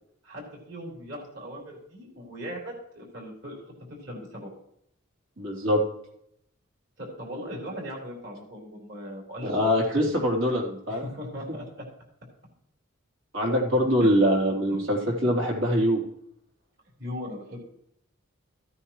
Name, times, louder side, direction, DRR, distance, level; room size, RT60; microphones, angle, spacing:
voice 1, 0.2-4.5 7.0-9.7 10.9-11.9 14.0-14.1 14.7-14.8 17.0-17.7, equal, 55° right, -2 dB, 4.0 m, -39 dB
voice 2, 5.4-5.8 9.4-11.0 13.3-16.0, equal, 80° right, -1 dB, 3.4 m, -23 dB
15.0 x 9.8 x 3.1 m, 0.73 s
head